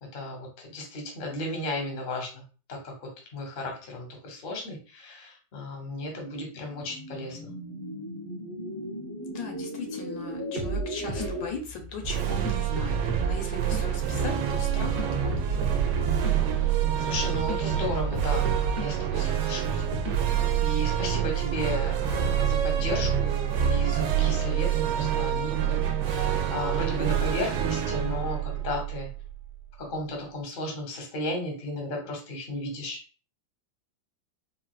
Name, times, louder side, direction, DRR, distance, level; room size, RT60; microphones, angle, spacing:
voice 1, 0.0-2.4 2.7-7.5 17.0-18.5 18.8-19.8 20.2-25.8 26.1-29.1 29.8-33.0, left 1 dB, 40° left, 2 dB, 0.8 m, -34 dB
sound 1, 6.0-11.5, equal, 5° left, 0.5 m, -37 dB
voice 2, 9.2-15.5, left 3 dB, 80° left, 4 dB, 1.4 m, -38 dB
sound 2, 10.6-20.7, right 2 dB, 60° right, 0.6 m, -35 dB
sound 3, 12.0-29.5, right 9 dB, 75° right, 1.1 m, -27 dB
4.1 x 2.3 x 2.3 m, 0.37 s
omnidirectional pair, 2.0 m